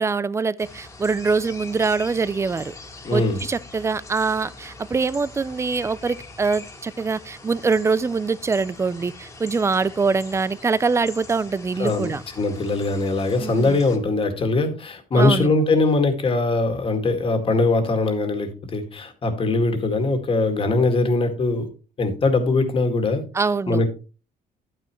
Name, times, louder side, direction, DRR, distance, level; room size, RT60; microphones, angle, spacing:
voice 1, 0.0-2.7 3.1-12.2 13.3-13.8 15.1-15.5 23.3-23.8, right 4 dB, 15° right, 0.4 m, -24 dB
sound 1, 0.6-14.0, left 2 dB, 15° left, 2.1 m, -42 dB
voice 2, 3.0-3.4 11.8-21.7 22.0-23.2 23.7-23.9, left 2 dB, 35° left, 2.0 m, -21 dB
11.0 x 9.0 x 3.1 m
cardioid pair, 145°, 16 cm